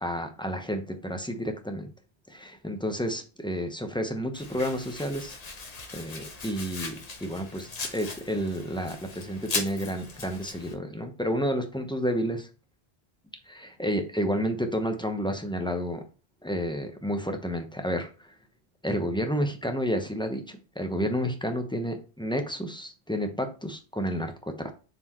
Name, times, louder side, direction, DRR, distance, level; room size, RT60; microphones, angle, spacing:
voice 1, 0.0-1.9 2.3-5.4 5.9-12.5 13.5-16.0 16.4-18.3 18.8-24.7, equal, 5° left, 5 dB, 0.8 m, -30 dB
Domestic sounds home sounds, 4.3-10.7, left 3 dB, 40° left, 0.9 m, -38 dB
7.4 x 4.5 x 3.0 m, 0.35 s
omnidirectional pair, 1.1 m